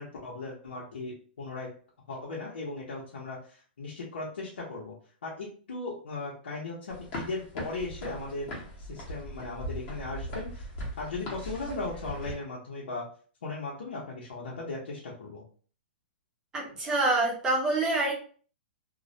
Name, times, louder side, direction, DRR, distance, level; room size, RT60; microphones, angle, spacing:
voice 1, 0.0-1.7 2.1-4.9 5.2-8.5 8.8-10.7 11.0-13.1 13.4-15.4, left 3 dB, 90° left, -6 dB, 0.7 m, -37 dB
sound 1, 6.9-12.3, equal, 30° left, 0.8 m, -39 dB
voice 2, 16.5-18.2, right 2 dB, 10° right, -2 dB, 0.6 m, -26 dB
2.3 x 2.1 x 2.7 m, 0.43 s
hypercardioid pair, 155°, 6 cm